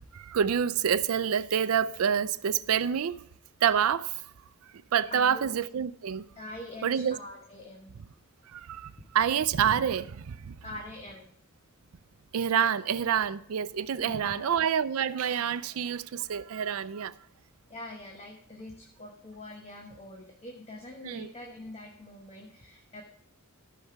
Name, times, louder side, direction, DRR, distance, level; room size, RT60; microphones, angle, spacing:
voice 1, 0.3-3.1 3.6-4.1 4.9-6.2 6.8-7.2 8.5-8.9 9.1-10.1 12.3-17.1 21.0-21.3, right 8 dB, 75° right, 0.4 m, -27 dB
voice 2, 5.1-5.5 6.4-8.0 10.6-11.3 14.0-14.6 17.7-23.0, left 1 dB, 30° left, 1.1 m, -44 dB
13.5 x 5.6 x 5.8 m
head